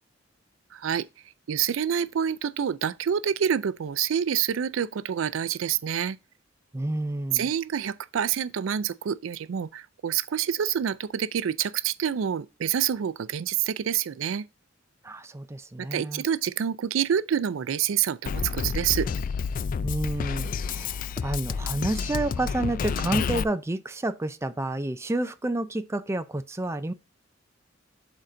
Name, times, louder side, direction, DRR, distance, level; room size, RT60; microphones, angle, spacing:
voice 1, 0.7-1.1 1.5-6.2 7.3-14.4 15.8-19.1, right 9 dB, 90° right, 0.4 m, -27 dB
voice 2, 6.7-7.5 15.0-16.2 19.8-26.9, right 2 dB, 15° right, 0.5 m, -30 dB
Drum kit, 18.3-23.4, left 6 dB, 45° left, 0.3 m, -29 dB
11.5 x 3.9 x 2.6 m
head